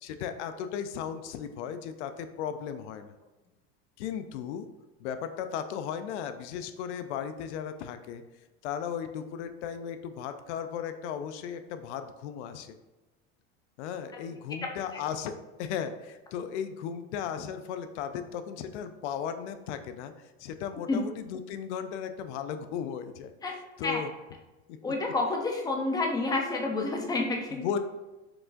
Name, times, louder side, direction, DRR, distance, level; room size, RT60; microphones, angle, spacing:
voice 1, 0.0-3.1 4.0-4.7 5.0-8.2 8.6-12.7 13.8-20.1 20.4-23.3 23.8-24.1 24.7-24.8 27.5-27.8, left 8 dB, 90° left, 9 dB, 0.5 m, -36 dB
voice 2, 24.8-27.6, left 3 dB, 10° left, 1 dB, 0.5 m, -29 dB
4.7 x 3.8 x 2.5 m, 1.1 s
supercardioid pair, 140°, 33 cm